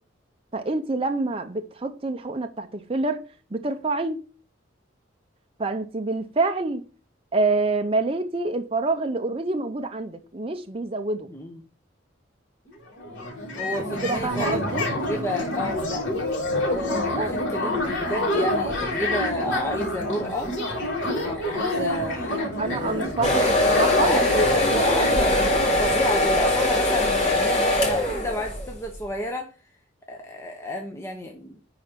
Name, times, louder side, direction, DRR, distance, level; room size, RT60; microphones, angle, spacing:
voice 1, 0.5-3.2 3.5-4.2 5.6-6.8 7.3-11.3 14.0-14.9 17.1-17.3 22.6-24.2 24.8-25.1, right 3 dB, 30° right, 0.6 m, -27 dB
voice 2, 11.3-11.6 13.6-16.1 16.6-20.5 21.2-23.1 24.0-29.5 30.1-31.6, left 1 dB, 15° left, 0.9 m, -31 dB
sound 1, 12.7-12.8 13.0-27.6, left 1 dB, 75° left, 3.2 m, -28 dB
sound 2, 23.2-28.7, left 1 dB, 35° left, 2.5 m, -22 dB
10.5 x 4.3 x 5.1 m
head